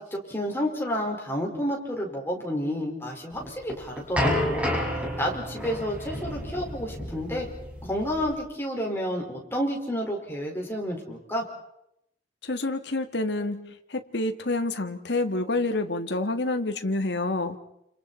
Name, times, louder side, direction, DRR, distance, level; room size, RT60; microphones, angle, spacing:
voice 1, 0.0-7.5 7.8-11.4, equal, 15° left, -1 dB, 5.1 m, -30 dB
sound 1, 3.4-8.3, left 1 dB, 5° right, 6.1 m, -30 dB
voice 2, 12.4-17.6, left 2 dB, 70° left, 6 dB, 1.9 m, -28 dB
29.5 x 29.0 x 4.4 m, 0.78 s
head